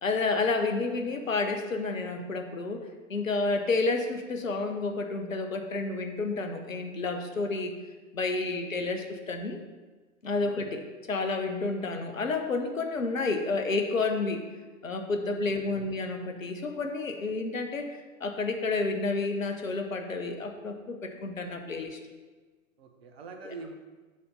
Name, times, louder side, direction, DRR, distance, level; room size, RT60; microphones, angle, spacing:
voice 1, 0.0-7.7 8.1-9.6 10.2-10.8 11.1-14.4 14.8-22.0 23.4-23.5, left 3 dB, 75° left, 5 dB, 1.1 m, -30 dB
voice 2, 10.4-10.8 15.7-15.8 22.8-23.7, right 4 dB, 50° right, 4 dB, 1.2 m, -44 dB
7.0 x 4.3 x 6.6 m, 1.3 s
figure-of-eight pair, 105°, 40 cm